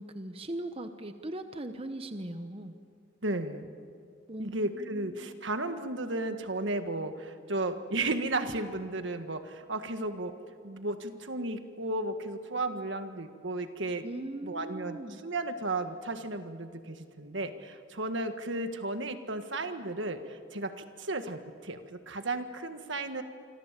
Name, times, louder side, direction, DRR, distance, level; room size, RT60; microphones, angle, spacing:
voice 1, 0.0-2.7 4.3-5.3 14.0-15.2, right 1 dB, 30° right, 8 dB, 0.9 m, -39 dB
voice 2, 3.2-3.7 4.4-10.3 10.6-14.0 14.4-23.2, right 2 dB, 70° right, 8 dB, 1.6 m, -34 dB
27.0 x 25.5 x 7.5 m, 2.2 s
head